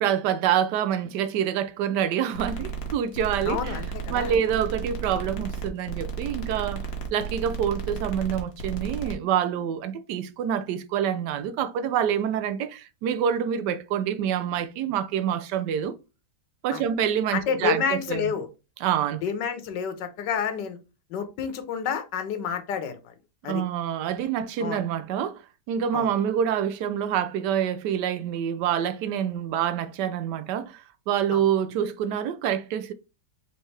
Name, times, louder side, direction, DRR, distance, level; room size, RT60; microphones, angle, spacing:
voice 1, 0.0-3.8 4.1-6.8 7.1-16.0 16.6-18.3 18.8-19.2 23.5-25.4 25.7-32.9, right 9 dB, 80° right, 1.2 m, -26 dB
sound 1, 2.3-9.1, right 6 dB, 65° left, 1.5 m, -33 dB
voice 2, 3.5-4.3 16.7-16.8 17.3-18.5 19.2-20.8 21.1-23.1 23.4-23.6 24.6-24.8 25.9-26.1 31.3-31.4, left 7 dB, 85° left, 1.4 m, -29 dB
4.1 x 3.5 x 3.2 m
omnidirectional pair, 1.8 m